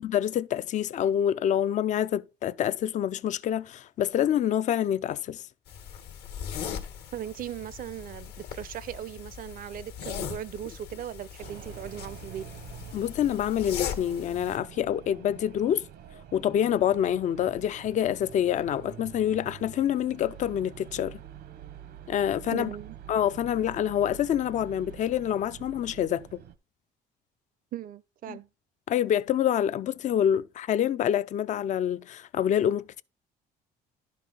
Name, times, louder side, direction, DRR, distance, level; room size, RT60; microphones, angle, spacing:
voice 1, 0.0-5.4 12.9-15.9 16.3-21.2 22.1-22.7 23.1-26.4 28.3-28.4 28.9-33.0, left 10 dB, 45° left, 0.4 m, -27 dB
sound 1, 5.7-14.6, left 8 dB, 75° left, 1.4 m, -39 dB
voice 2, 7.1-12.5 22.5-23.0 27.7-28.5, right 11 dB, 55° right, 0.6 m, -38 dB
sound 2, 11.4-26.6, right 10 dB, 75° right, 1.0 m, -46 dB
11.0 x 5.4 x 3.9 m
cardioid pair, 110°, 17 cm